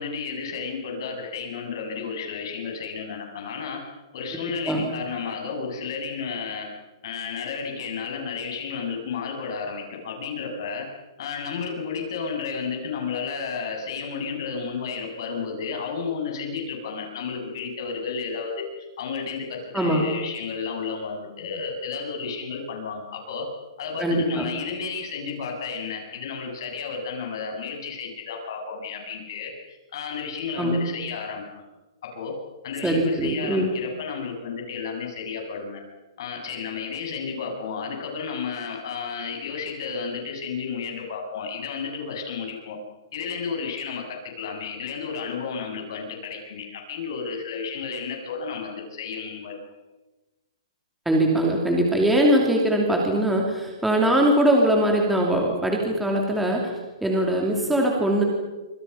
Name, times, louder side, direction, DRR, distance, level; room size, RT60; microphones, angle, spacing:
voice 1, 0.0-3.9 4.1-6.7 7.0-10.9 11.2-18.7 19.0-23.5 23.8-31.6 32.0-32.4 32.6-35.8 36.2-42.8 43.1-49.6, left 5 dB, 50° left, 2 dB, 7.7 m, -32 dB
voice 2, 24.0-24.5 30.6-30.8 32.8-33.7 51.1-56.7 57.0-58.2, right 1 dB, 5° right, -1 dB, 2.8 m, -21 dB
28.5 x 26.0 x 5.7 m, 1.1 s
hypercardioid pair, 170°, 3 cm